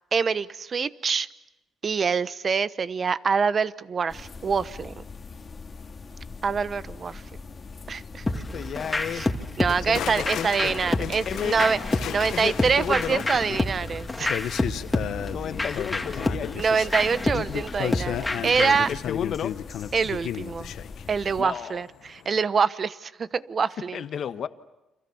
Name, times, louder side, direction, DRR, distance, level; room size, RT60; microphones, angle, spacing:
voice 1, 0.1-1.3 1.8-5.0 6.4-7.2 7.9-8.2 9.1-9.3 9.6-11.8 12.1-14.5 16.5-18.9 19.9-20.7 21.1-24.0, right 5 dB, 45° right, 1.0 m, -25 dB
sound 1, 4.1-21.4, left 4 dB, 35° left, 2.0 m, -42 dB
voice 2, 8.3-9.3 9.9-10.5 11.0-11.6 12.0-13.2 15.3-16.7 18.9-19.6 21.4-21.8 23.9-24.5, left 8 dB, 60° left, 1.3 m, -32 dB
sound 2, 8.3-18.9, left 2 dB, 15° left, 2.8 m, -29 dB
sound 3, 9.7-21.8 22.1-22.4, left 10 dB, 75° left, 1.0 m, -34 dB
29.5 x 27.0 x 7.1 m
cardioid pair, 90°, 0 cm